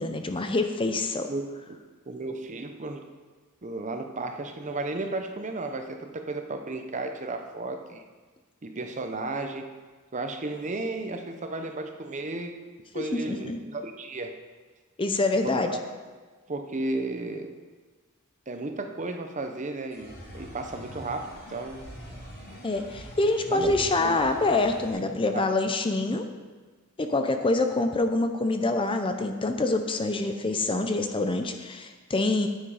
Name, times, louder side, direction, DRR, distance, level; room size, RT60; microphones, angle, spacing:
voice 1, 0.0-1.3 12.9-13.6 15.0-15.8 22.6-26.3 27.0-32.5, left 2 dB, 25° left, 6 dB, 0.6 m, -26 dB
voice 2, 1.3-1.8 2.1-3.0 3.6-8.0 8.6-9.7 10.1-14.4 15.4-15.8 16.5-17.5 18.5-21.8 23.5-24.3 25.0-25.4, right 2 dB, 35° right, 5 dB, 0.8 m, -34 dB
sound 1, 19.9-24.9, equal, 45° left, 2.8 m, -44 dB
9.4 x 8.7 x 4.9 m, 1.4 s
head